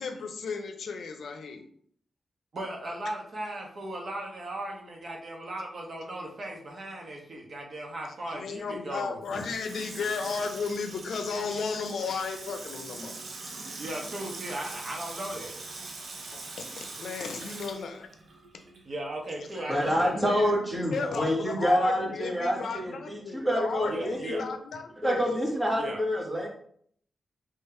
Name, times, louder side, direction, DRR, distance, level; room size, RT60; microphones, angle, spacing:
voice 1, 0.0-1.7 8.3-13.2 16.2-18.1 19.5-25.2, left 5 dB, 80° left, 6 dB, 0.6 m, -35 dB
voice 2, 2.5-9.2 13.8-15.5 18.8-20.2 23.8-24.4 25.8-26.0, right 1 dB, 50° right, 0 dB, 1.2 m, -37 dB
Water tap faucet / Sink (filling or washing), 9.2-18.9 19.2-19.3, right 3 dB, 80° right, 1.0 m, -42 dB
voice 3, 19.7-24.5 25.0-26.5, equal, 15° right, -1 dB, 1.3 m, -27 dB
3.8 x 3.3 x 4.3 m, 0.62 s
wide cardioid pair, 115°, 0 cm